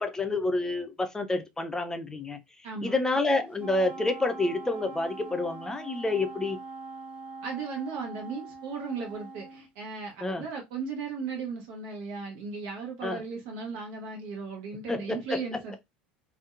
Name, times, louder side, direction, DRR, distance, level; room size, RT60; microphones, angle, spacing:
voice 1, 0.0-2.4 2.8-6.6 10.2-10.4 13.0-13.2 14.9-15.6, left 2 dB, 10° left, 0.5 m, -29 dB
voice 2, 2.6-3.0 7.4-15.7, right 5 dB, 55° right, 0.7 m, -36 dB
Wind instrument woodwind instrument, 3.5-9.7, right 3 dB, 30° right, 1.0 m, -43 dB
2.6 x 2.1 x 2.3 m
figure-of-eight pair, 70°, 5 cm